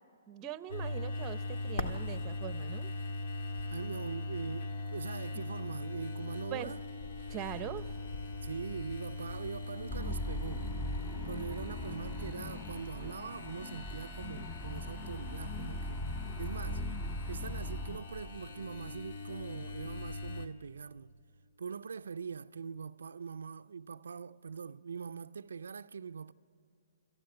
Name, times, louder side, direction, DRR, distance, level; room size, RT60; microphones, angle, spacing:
voice 1, 0.3-2.9 6.5-6.7 7.3-7.9, right 11 dB, 25° right, 0.7 m, -42 dB
sound 1, 0.7-20.5, left 2 dB, 65° left, 1.5 m, -41 dB
voice 2, 3.7-6.8 8.4-10.7 11.2-16.0 16.4-16.9 17.3-21.1 21.6-26.3, right 6 dB, 80° right, 0.4 m, -42 dB
sound 2, 9.9-18.0, left 1 dB, 15° left, 0.7 m, -40 dB
27.0 x 14.5 x 7.8 m
hypercardioid pair, 145°, 0 cm